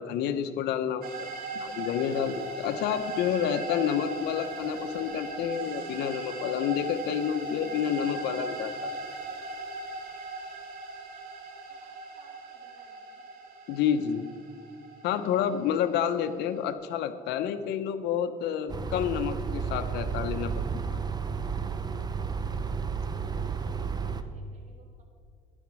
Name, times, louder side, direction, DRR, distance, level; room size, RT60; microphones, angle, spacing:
voice 1, 0.0-8.9 13.7-14.3 15.0-20.8, left 8 dB, 85° left, 9 dB, 0.9 m, -29 dB
sound 1, 1.0-16.7, right 3 dB, 65° right, 2.7 m, -39 dB
voice 2, 11.7-13.2 23.1-25.0, right 3 dB, 45° right, 0 dB, 3.0 m, -62 dB
sound 2, 18.7-24.2, right 6 dB, 25° right, 0.9 m, -32 dB
12.5 x 11.0 x 6.2 m, 2.1 s
cardioid pair, 110°, 17 cm